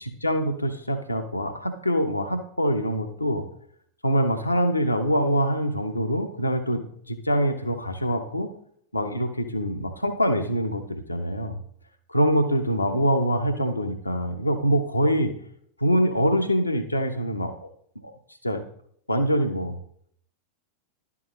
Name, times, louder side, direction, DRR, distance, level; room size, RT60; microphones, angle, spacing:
voice 1, 0.0-3.4 4.0-6.8 7.1-8.5 8.9-11.6 12.1-15.3 15.8-17.5 18.0-18.1 18.4-18.6 19.1-19.8, equal, 85° left, 6 dB, 0.8 m, -24 dB
11.0 x 6.0 x 3.1 m, 0.66 s
figure-of-eight pair, 90°, 0 cm